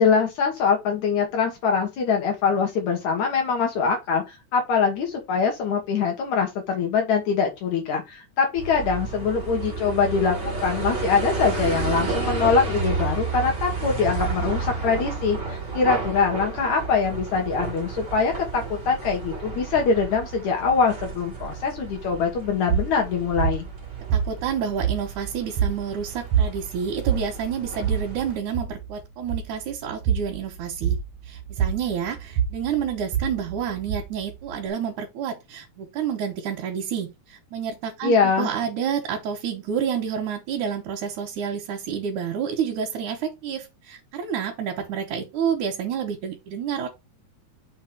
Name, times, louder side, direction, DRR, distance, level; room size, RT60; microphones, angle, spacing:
voice 1, 0.0-10.4 10.6-23.7 38.0-38.5, left 5 dB, 80° left, 2.8 m, -23 dB
sound 1, 8.6-28.4, right 4 dB, 40° right, 2.8 m, -32 dB
sound 2, 22.7-34.7, right 8 dB, 70° right, 2.2 m, -27 dB
voice 2, 24.1-31.0 31.3-46.9, right 7 dB, 90° right, 2.5 m, -29 dB
6.6 x 3.1 x 5.9 m
omnidirectional pair, 3.3 m